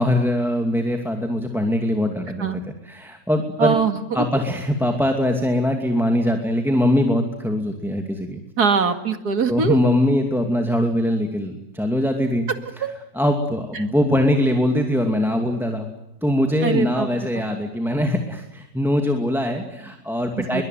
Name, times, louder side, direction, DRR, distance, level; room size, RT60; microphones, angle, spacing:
voice 1, 0.0-2.5 2.9-3.8 4.1-8.4 9.5-12.5 13.2-15.9 16.2-20.6, left 1 dB, ahead, 4 dB, 2.5 m, -22 dB
voice 2, 3.6-4.3 8.6-9.8 12.5-12.9 13.7-13.8 16.6-17.4 20.4-20.6, right 5 dB, 65° right, 8 dB, 2.7 m, -22 dB
23.0 x 22.5 x 9.4 m, 0.91 s
omnidirectional pair, 1.8 m